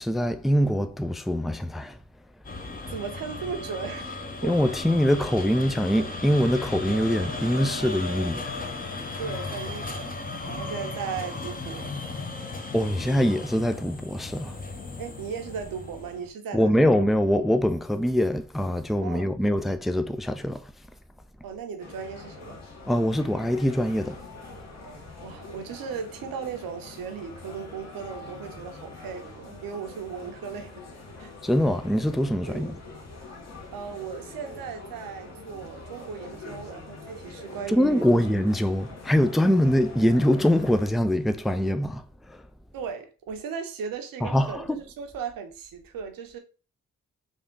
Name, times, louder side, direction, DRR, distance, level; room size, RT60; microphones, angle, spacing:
voice 1, 0.0-2.0 4.4-8.5 12.7-14.6 16.5-20.6 22.9-24.2 31.4-32.8 37.7-42.4 44.2-44.8, equal, ahead, 0.3 m, -23 dB
sound 1, 2.4-16.3, left 3 dB, 25° left, 0.8 m, -36 dB
voice 2, 2.9-4.8 9.2-12.0 15.0-16.9 19.0-19.3 21.4-22.6 25.2-30.8 31.2-31.3 32.4-32.8 33.7-38.1 42.7-46.4, right 6 dB, 70° right, 0.8 m, -37 dB
sound 2, 21.8-40.9, left 3 dB, 45° left, 1.4 m, -44 dB
3.5 x 2.4 x 3.7 m
hypercardioid pair, 40°, 35 cm